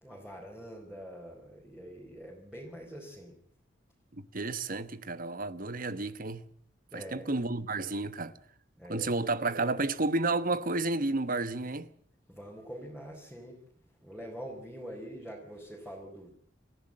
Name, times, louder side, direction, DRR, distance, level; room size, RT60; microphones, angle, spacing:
voice 1, 0.0-3.3 6.9-7.3 8.8-9.1 12.3-13.6 14.0-16.3, equal, 5° right, 4.5 m, -44 dB
voice 2, 4.1-6.5 6.9-8.3 8.9-11.9, right 2 dB, 50° right, 1.2 m, -31 dB
28.0 x 15.0 x 7.7 m
head